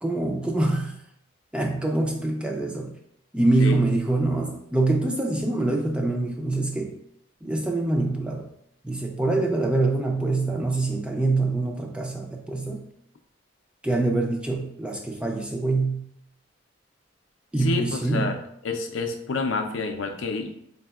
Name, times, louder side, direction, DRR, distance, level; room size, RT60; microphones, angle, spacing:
voice 1, 0.0-1.0 1.5-2.9 3.3-6.9 7.4-8.5 8.8-12.8 13.8-16.0 17.5-18.3, right 2 dB, 5° right, 1 dB, 0.3 m, -25 dB
voice 2, 17.6-18.4 18.6-20.5, left 3 dB, 70° left, 5 dB, 0.5 m, -28 dB
4.0 x 3.5 x 2.3 m, 0.74 s
head